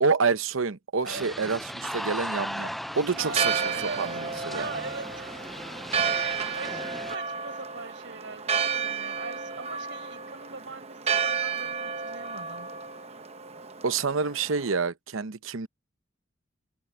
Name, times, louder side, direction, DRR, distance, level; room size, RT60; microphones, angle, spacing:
voice 1, 0.0-3.6 4.0-4.7 13.8-15.7, right 4 dB, 85° right, 0.8 m, -27 dB
sound 1, 1.1-7.1, equal, ahead, 0.4 m, -37 dB
Church bell, 3.2-14.7, right 6 dB, 30° right, 0.9 m, -32 dB
voice 2, 3.2-4.1 4.5-5.9 6.1-12.7, right 3 dB, 65° right, 6.3 m, -41 dB
head